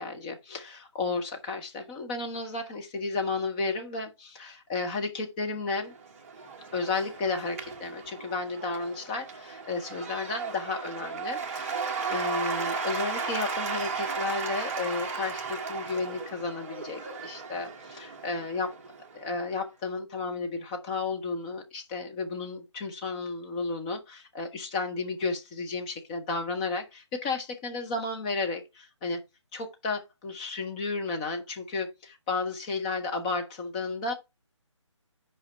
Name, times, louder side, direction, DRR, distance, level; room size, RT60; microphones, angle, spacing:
voice 1, 0.0-5.9 6.7-18.7 19.1-29.2 29.5-34.1, left 3 dB, 15° left, 0.9 m, -33 dB
Cheering / Applause / Crowd, 5.8-19.3, right 5 dB, 30° right, 1.0 m, -35 dB
5.9 x 5.0 x 5.7 m
figure-of-eight pair, 160°, 16 cm